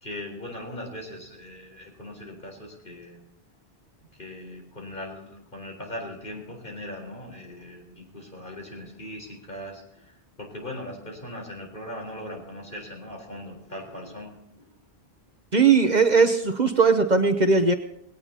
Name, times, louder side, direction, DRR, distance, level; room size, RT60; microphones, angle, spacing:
voice 1, 0.0-3.2 4.2-9.8 10.4-14.7, left 1 dB, 50° left, 0 dB, 4.4 m, -39 dB
voice 2, 15.5-17.7, right 4 dB, 45° right, 7 dB, 1.0 m, -19 dB
20.5 x 17.5 x 2.9 m, 0.76 s
omnidirectional pair, 1.1 m